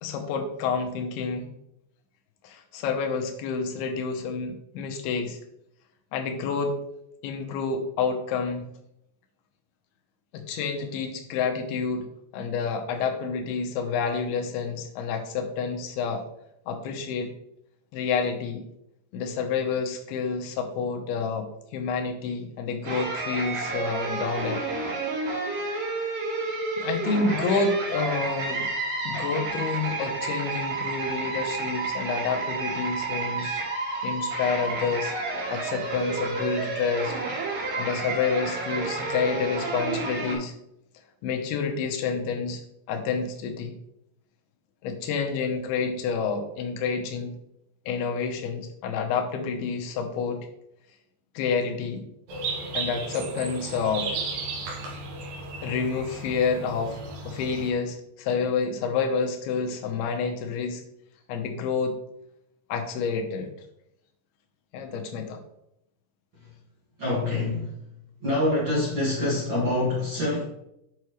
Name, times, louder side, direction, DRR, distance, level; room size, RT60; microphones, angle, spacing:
voice 1, 0.0-1.5 2.4-5.4 6.1-6.8 7.2-8.7 10.3-12.1 12.3-16.2 16.7-17.3 17.9-18.6 19.1-21.5 21.7-24.6 26.8-28.7 29.0-33.6 34.0-35.1 35.5-37.1 37.8-40.5 41.2-42.6 42.9-43.8 44.8-47.3 47.9-50.5 51.4-52.0 52.7-54.1 55.6-57.0 57.3-60.8 61.3-61.9 62.7-63.5 64.7-65.4, left 5 dB, 80° left, 4 dB, 2.8 m, -28 dB
sound 1, 22.8-40.3, right 3 dB, 85° right, 3.8 m, -30 dB
sound 2, 52.3-57.7, right 3 dB, 65° right, 2.6 m, -34 dB
voice 2, 67.0-67.8 68.2-70.4, left 1 dB, 45° right, -6 dB, 1.6 m, -26 dB
7.9 x 5.7 x 3.1 m, 0.80 s
omnidirectional pair, 4.5 m